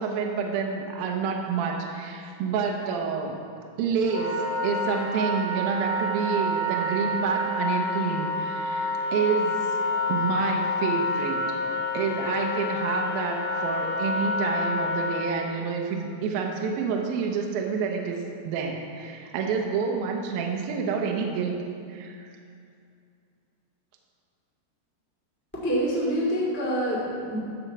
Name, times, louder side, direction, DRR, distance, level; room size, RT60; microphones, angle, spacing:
voice 1, 0.0-3.4 3.8-9.6 10.1-11.4 11.9-22.3, right 5 dB, 75° right, 1 dB, 2.2 m, -28 dB
Wind instrument woodwind instrument, 4.0-15.3, left 2 dB, 40° left, 1.5 m, -28 dB
voice 2, 25.6-27.4, equal, 5° left, -6 dB, 1.1 m, -26 dB
13.0 x 4.5 x 7.3 m, 2.4 s
omnidirectional pair, 5.2 m